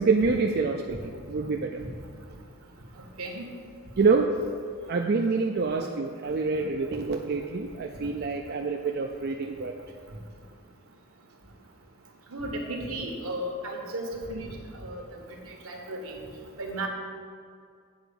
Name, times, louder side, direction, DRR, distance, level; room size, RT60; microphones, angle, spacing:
voice 1, 0.0-1.8 4.0-4.3 4.9-9.7, right 4 dB, 50° right, 2 dB, 0.4 m, -26 dB
voice 2, 12.3-14.0 14.3-14.5 14.8-15.0 15.6-16.1 16.6-16.9, right 1 dB, 75° right, 1 dB, 1.4 m, -34 dB
8.0 x 4.6 x 6.9 m, 2.2 s
head